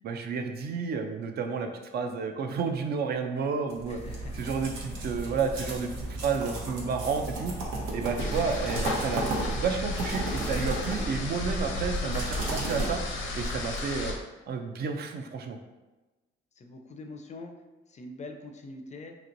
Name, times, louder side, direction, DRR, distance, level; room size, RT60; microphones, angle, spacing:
voice 1, 0.0-4.0 4.3-7.5 7.9-13.0 13.3-14.1 14.5-15.6, right 5 dB, 55° right, 5 dB, 0.4 m, -31 dB
sound 1, 3.7-13.4, right 2 dB, 80° right, 0.8 m, -35 dB
voice 2, 3.9-4.5 16.6-17.5 17.9-19.1, left 2 dB, 35° left, 4 dB, 0.4 m, -44 dB
sound 2, 8.2-14.1, left 2 dB, 85° left, 0.6 m, -33 dB
2.9 x 2.9 x 2.5 m, 1.1 s
cardioid pair, 90°, 20 cm